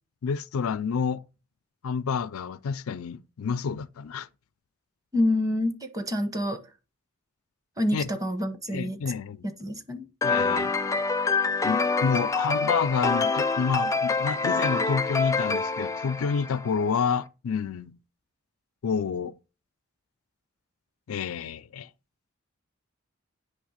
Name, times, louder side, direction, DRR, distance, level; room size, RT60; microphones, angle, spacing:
voice 1, 0.2-1.2 1.8-4.3 7.9-8.1 8.7-9.5 10.2-10.7 11.6-18.0 18.8-19.3 21.1-21.9, left 6 dB, 85° left, 0.4 m, -29 dB
voice 2, 5.1-6.6 7.8-9.0 9.4-10.1, left 1 dB, 15° right, 1.0 m, -27 dB
sound 1, 10.2-16.8, left 4 dB, 15° left, 0.4 m, -26 dB
9.5 x 3.3 x 6.4 m
head